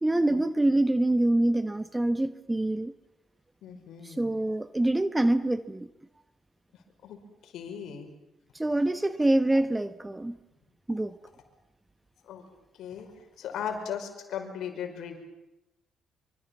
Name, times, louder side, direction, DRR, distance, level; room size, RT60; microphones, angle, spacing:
voice 1, 0.0-2.9 4.0-5.9 8.5-10.4 10.9-11.1, right 1 dB, 15° right, 12 dB, 1.2 m, -25 dB
voice 2, 3.6-4.4 6.7-8.1 12.2-12.4 12.8-15.2, left 8 dB, 65° left, 5 dB, 5.3 m, -38 dB
26.0 x 24.5 x 7.3 m, 0.91 s
hypercardioid pair, 50°, 0 cm